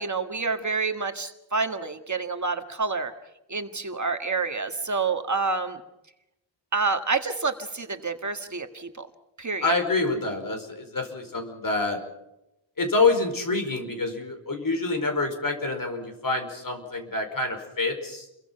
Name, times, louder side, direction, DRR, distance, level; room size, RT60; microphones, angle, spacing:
voice 1, 0.0-3.1 3.5-5.8 6.7-9.1 9.4-9.7, right 4 dB, 40° right, 6 dB, 1.7 m, -28 dB
voice 2, 9.6-12.0 12.8-18.3, left 3 dB, 45° left, 6 dB, 4.9 m, -27 dB
29.5 x 23.0 x 5.8 m, 0.89 s
wide cardioid pair, 150°, 46 cm